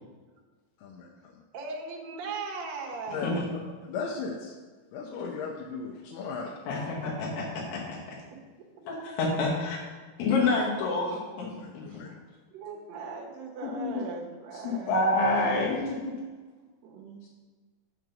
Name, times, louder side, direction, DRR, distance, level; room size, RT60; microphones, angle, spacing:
voice 1, 0.8-1.4 3.1-3.3 3.9-4.6 4.9-6.5 11.4-12.1, left 5 dB, 85° left, 0 dB, 2.3 m, -37 dB
voice 2, 1.5-3.7 8.3-8.4 11.2-11.4 11.9-12.2 12.5-15.4 16.6-17.3, right 4 dB, 60° right, -1 dB, 2.0 m, -39 dB
voice 3, 6.7-8.2 8.8-9.8 10.2-11.5 11.7-11.8 13.6-14.0 14.6-16.1, left 2 dB, 65° left, -4 dB, 2.4 m, -28 dB
6.1 x 5.8 x 5.2 m, 1.4 s
omnidirectional pair, 3.9 m